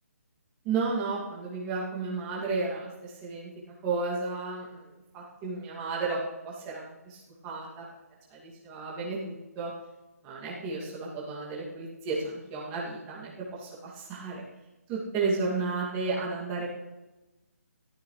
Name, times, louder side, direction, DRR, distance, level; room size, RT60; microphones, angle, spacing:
voice 1, 0.6-3.5 3.8-4.8 5.1-7.9 8.3-9.7 10.2-13.3 13.6-14.4 14.9-16.7, right 4 dB, 20° right, -5 dB, 2.7 m, -33 dB
14.5 x 13.0 x 3.4 m, 1.1 s
figure-of-eight pair, 150°, 9 cm